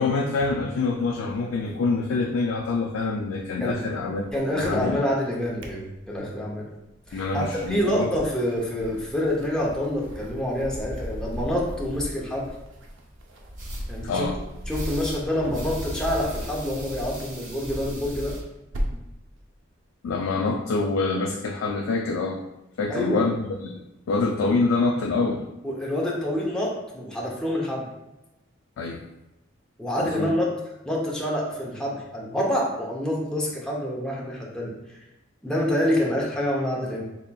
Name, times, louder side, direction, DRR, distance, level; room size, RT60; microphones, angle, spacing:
voice 1, 0.0-5.0 7.1-8.1 14.0-14.4 20.0-22.4 22.8-23.8 24.1-25.5 28.8-29.0 30.0-30.3, left 3 dB, 75° left, 2 dB, 0.3 m, -26 dB
sound 1, 0.9-3.1 3.4-5.0 5.4-6.4 6.9-19.1, equal, 70° right, 0.6 m, -37 dB
voice 2, 4.3-6.7 7.1-12.5 13.9-14.3 14.7-18.4 22.9-23.3 25.6-27.9 29.8-30.5 30.8-35.0 35.4-37.0, left 1 dB, 5° left, -4 dB, 0.6 m, -27 dB
sound 2, 13.6-13.8 14.7-15.2 15.5-18.4, right 2 dB, 40° right, 0.9 m, -43 dB
4.1 x 3.4 x 2.2 m, 0.95 s
head